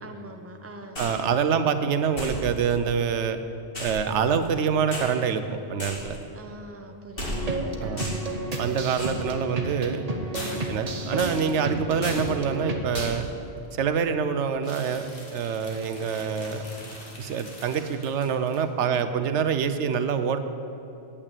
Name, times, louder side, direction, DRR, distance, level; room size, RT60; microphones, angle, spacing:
voice 1, 0.0-1.0 6.3-8.2 8.6-9.1 10.3-10.6 11.6-11.8 18.9-19.1, right 1 dB, 15° right, 4 dB, 0.7 m, -43 dB
sound 1, 1.0-1.3 2.2-2.7 3.7-4.6 4.9-5.1 5.8-6.2 7.2-7.6 8.0-8.3 8.9-9.3 10.3-10.8 11.2-11.6 12.0-12.3 12.9-13.3 14.6-18.6, left 1 dB, 55° left, 2.4 m, -37 dB
voice 2, 1.0-3.4 3.8-5.4 5.7-6.2 7.8-8.1 8.6-10.0 10.7-13.3 13.7-16.6 17.2-20.4, right 6 dB, 85° right, 9 dB, 1.0 m, -26 dB
sound 2, 7.2-13.1, right 2 dB, 35° right, 1.1 m, -32 dB
8.7 x 8.5 x 8.8 m, 2.8 s
omnidirectional pair, 1.1 m